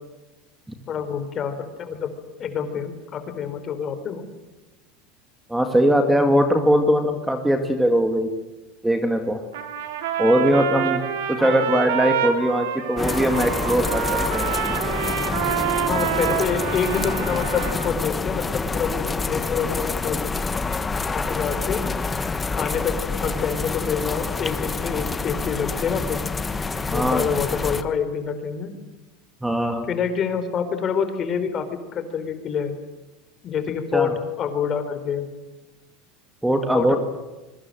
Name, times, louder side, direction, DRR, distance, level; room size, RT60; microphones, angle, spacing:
voice 1, 0.9-2.1 2.4-4.2 11.4-11.6 15.8-20.3 21.1-21.9 22.5-26.2 26.9-28.7 29.9-32.8 33.4-35.3 36.7-37.0, left 7 dB, 35° left, 9 dB, 4.0 m, -27 dB
voice 2, 5.5-8.3 8.8-9.4 10.2-11.0 11.3-14.0 14.3-14.5 26.9-27.2 29.4-29.9 33.9-34.1 36.4-37.0, equal, 5° right, 6 dB, 2.1 m, -20 dB
Trumpet, 9.5-18.0, right 9 dB, 85° right, 3.4 m, -27 dB
sound 1, 13.0-27.8, left 4 dB, 15° left, 1.3 m, -27 dB
25.5 x 23.0 x 7.8 m, 1.1 s
supercardioid pair, 135°, 0 cm